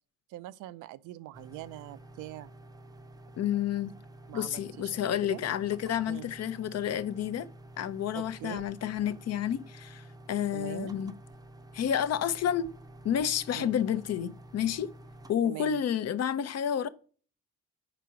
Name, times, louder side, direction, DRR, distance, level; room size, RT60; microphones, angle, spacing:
voice 1, 0.3-2.5 4.3-4.9 5.2-5.4 6.1-6.3 8.1-8.7 10.5-11.0 13.5-13.7 15.4-15.8, right 15 dB, 90° right, 0.5 m, -43 dB
sound 1, 1.3-15.3, right 1 dB, 15° right, 0.5 m, -50 dB
voice 2, 3.4-3.9 4.3-7.5 7.8-11.1 11.7-12.7 13.0-14.9 15.3-16.9, left 9 dB, 55° left, 0.6 m, -30 dB
5.0 x 4.6 x 6.1 m
cardioid pair, 90°, 30 cm